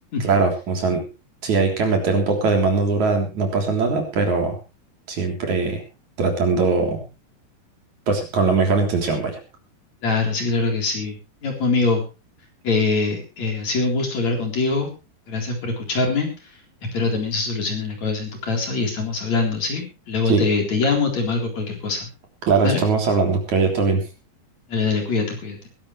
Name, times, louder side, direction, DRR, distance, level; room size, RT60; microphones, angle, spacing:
voice 1, 0.2-1.1 1.4-4.6 5.1-5.8 6.2-7.1 8.1-9.4 20.3-20.4 22.5-24.0, right 4 dB, 45° right, 2 dB, 4.5 m, -20 dB
voice 2, 10.0-11.2 11.4-12.0 12.6-14.9 15.3-16.3 16.9-22.1 22.6-22.8 24.7-25.7, left 4 dB, 40° left, 2 dB, 4.9 m, -23 dB
22.0 x 12.0 x 3.2 m, 0.30 s
omnidirectional pair, 4.9 m